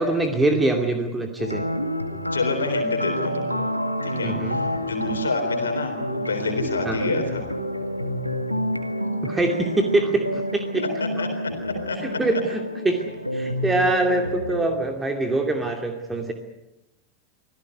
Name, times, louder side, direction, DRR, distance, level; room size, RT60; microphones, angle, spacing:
voice 1, 0.0-1.6 4.2-4.6 6.9-7.0 9.2-10.8 12.0-13.0 13.3-16.3, right 2 dB, 10° right, 4 dB, 2.5 m, -24 dB
sound 1, 1.4-14.7, equal, 90° left, 2.0 m, -28 dB
voice 2, 2.3-3.7 4.0-7.5 11.0-11.3 11.6-12.2, left 3 dB, 70° left, 4 dB, 3.8 m, -28 dB
26.0 x 16.5 x 9.7 m, 0.94 s
figure-of-eight pair, 90°, 0 cm